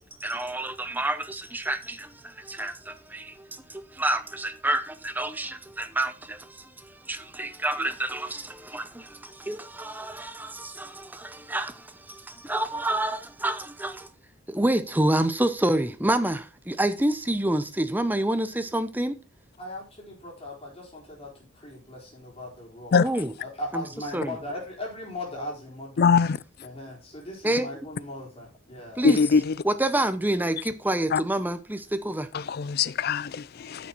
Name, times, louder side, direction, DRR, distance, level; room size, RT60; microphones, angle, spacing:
voice 1, 0.2-2.1 2.4-3.3 3.7-6.4 7.1-11.7 12.1-14.1 14.5-19.2 22.9-23.3 23.7-23.8 24.1-24.3 27.4-27.7 29.0-29.2 29.6-32.3, right 1 dB, 10° right, 0.7 m, -28 dB
voice 2, 19.6-23.0 23.4-26.1 26.6-29.1, left 1 dB, 30° left, 4.1 m, -38 dB
voice 3, 26.0-26.4 29.0-29.6 31.1-31.2 32.3-33.9, left 5 dB, 50° left, 0.4 m, -22 dB
9.7 x 6.9 x 4.5 m
head